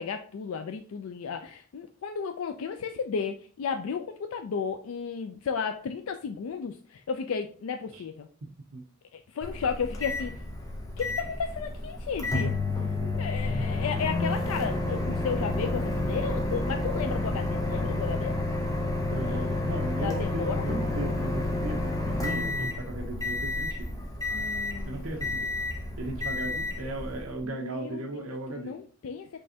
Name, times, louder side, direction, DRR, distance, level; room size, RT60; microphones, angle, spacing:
voice 1, 0.0-8.3 9.1-10.3 11.0-12.5 13.1-18.4 19.2-19.6 20.0-20.7 24.3-25.1 27.4-29.4, left 6 dB, 75° left, 6 dB, 0.4 m, -34 dB
Microwave oven, 9.4-27.4, left 2 dB, 15° left, 0.9 m, -30 dB
voice 2, 12.4-13.2 19.1-23.9 24.8-25.5 26.0-28.7, right 2 dB, 85° right, 2 dB, 0.8 m, -37 dB
5.3 x 3.3 x 2.7 m, 0.42 s
head